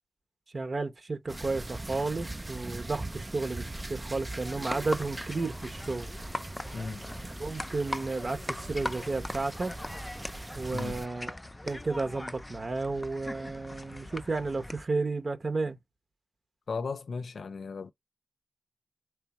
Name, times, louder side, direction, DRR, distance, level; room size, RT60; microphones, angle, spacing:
voice 1, 0.5-6.1 7.4-9.7 10.5-11.3 11.7-15.8, right 3 dB, 50° right, 0.8 m, -32 dB
sound 1, 1.3-11.1, right 2 dB, 25° right, 0.4 m, -41 dB
sound 2, 4.4-14.9, left 1 dB, 25° left, 0.5 m, -40 dB
voice 2, 6.7-7.1 10.7-10.9 16.7-17.9, left 4 dB, 75° left, 0.4 m, -36 dB
3.5 x 3.3 x 3.0 m
cardioid pair, 40°, 0 cm